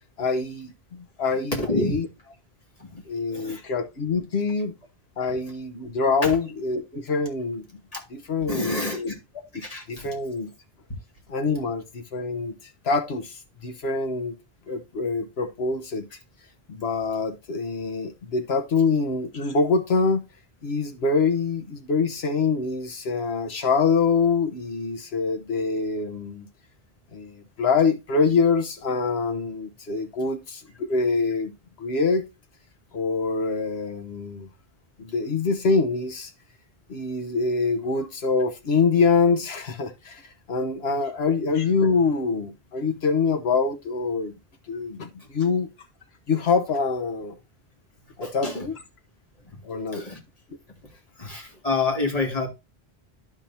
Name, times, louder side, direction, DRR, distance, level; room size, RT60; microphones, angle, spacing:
voice 1, 0.2-2.1 3.0-4.7 5.2-7.6 8.1-9.1 9.5-10.5 11.3-14.3 14.7-16.0 16.7-20.2 20.6-26.5 27.1-31.5 31.8-32.2 32.9-34.5 35.0-36.3 36.9-40.2 40.5-44.4 44.7-45.7 46.3-47.3 48.2-48.7 49.6-50.0, left 4 dB, 90° left, 1.3 m, -25 dB
voice 2, 1.5-1.9 2.8-3.0 3.3-3.7 6.2-6.3 7.9-8.0 8.5-9.1 9.5-10.1 41.2-41.3 48.2-48.6 49.9-50.2 51.2-52.5, left 3 dB, 35° left, 2.3 m, -28 dB
11.5 x 5.3 x 2.7 m
omnidirectional pair, 1.0 m